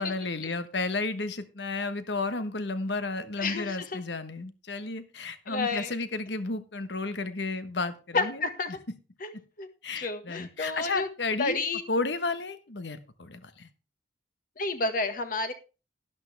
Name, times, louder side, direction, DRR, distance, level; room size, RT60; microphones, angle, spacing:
voice 1, 0.0-8.4 9.8-11.6 11.9-13.7, left 3 dB, 70° left, 11 dB, 1.2 m, -32 dB
voice 2, 3.4-4.0 5.5-5.9 8.1-8.8 9.2-9.7 10.0-11.1 11.4-11.8 14.6-15.5, left 3 dB, 50° left, 8 dB, 1.6 m, -30 dB
12.0 x 11.5 x 3.4 m, 0.32 s
head